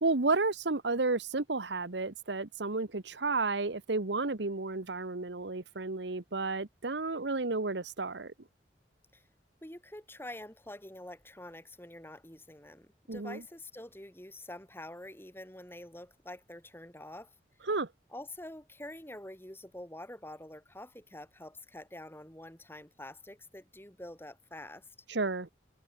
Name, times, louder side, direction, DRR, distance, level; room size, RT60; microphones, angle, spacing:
voice 1, 0.0-8.3 13.1-13.4 17.7-17.9 25.1-25.5, right 3 dB, 80° right, 1.3 m, -32 dB
voice 2, 9.6-17.3 18.1-24.9, left 1 dB, 15° left, 4.8 m, -47 dB
head